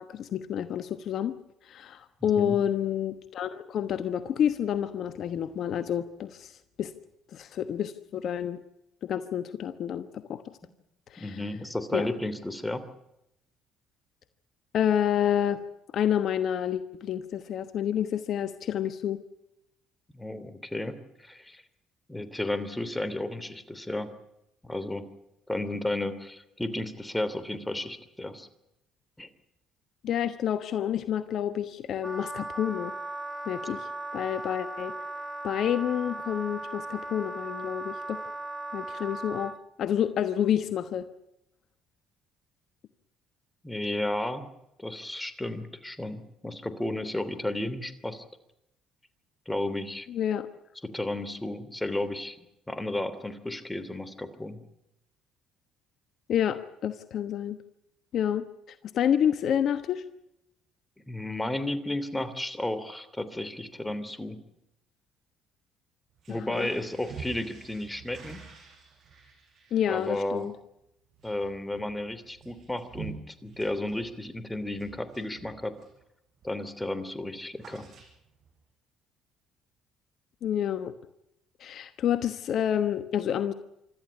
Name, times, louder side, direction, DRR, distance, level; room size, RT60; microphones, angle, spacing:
voice 1, 0.0-1.3 1.6-6.9 7.3-8.6 9.0-10.6 11.1-11.4 11.9-12.1 14.7-15.6 15.9-19.2 30.0-32.9 33.5-34.9 35.4-38.2 38.7-41.1 50.1-50.5 56.3-57.6 58.1-60.0 66.3-66.7 69.7-70.5 80.4-80.9 81.6-83.5, left 9 dB, 60° left, 11 dB, 1.1 m, -29 dB
voice 2, 2.2-2.6 11.2-12.8 20.1-21.6 22.1-24.1 24.6-25.0 25.5-28.5 29.2-29.3 43.6-44.4 44.8-48.2 49.5-50.1 50.8-52.4 52.7-54.6 61.1-64.4 66.3-68.4 69.9-70.5 71.2-75.7 76.4-77.9, left 1 dB, 10° left, 13 dB, 3.0 m, -33 dB
Wind instrument woodwind instrument, 32.0-39.6, right 2 dB, 10° right, 1.9 m, -37 dB
sound 1, 66.1-76.0 76.4-76.7 76.9-78.5, right 6 dB, 55° right, 5.7 m, -48 dB
26.0 x 13.5 x 9.8 m, 0.84 s
hypercardioid pair, 65°, 0 cm